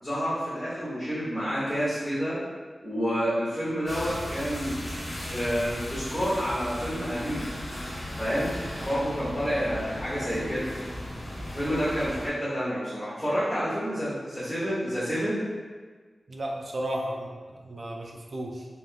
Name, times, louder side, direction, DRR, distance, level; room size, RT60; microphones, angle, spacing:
voice 1, 0.0-2.4 2.8-4.7 5.3-7.5 8.2-8.5 8.8-10.7 11.5-15.4, equal, 15° left, -14 dB, 1.0 m, -29 dB
sound 1, 3.9-12.3, left 1 dB, 80° left, 1.4 m, -36 dB
voice 2, 16.3-18.7, right 1 dB, 50° right, 0 dB, 0.4 m, -34 dB
3.4 x 2.4 x 2.3 m, 1.4 s
wide cardioid pair, 120°, 0 cm